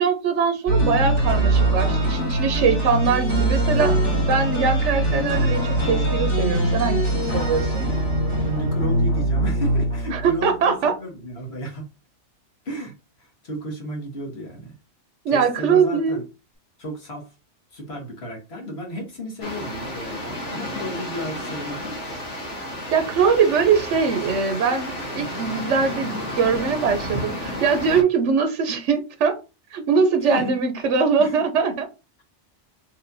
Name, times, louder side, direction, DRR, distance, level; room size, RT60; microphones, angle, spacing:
voice 1, 0.0-7.9 10.1-11.0 15.2-16.2 22.9-29.4 29.7-31.9, right 5 dB, 80° right, 1.0 m, -22 dB
sound 1, 0.7-10.5, right 1 dB, 25° left, 2.0 m, -22 dB
voice 2, 8.4-11.9 12.6-14.7 15.3-16.2 16.8-17.3 17.7-21.9 30.2-30.5 31.2-31.4, equal, 60° left, 1.6 m, -33 dB
sound 2, 19.4-28.0, left 1 dB, 85° left, 1.7 m, -32 dB
4.6 x 3.2 x 2.6 m
omnidirectional pair, 1.2 m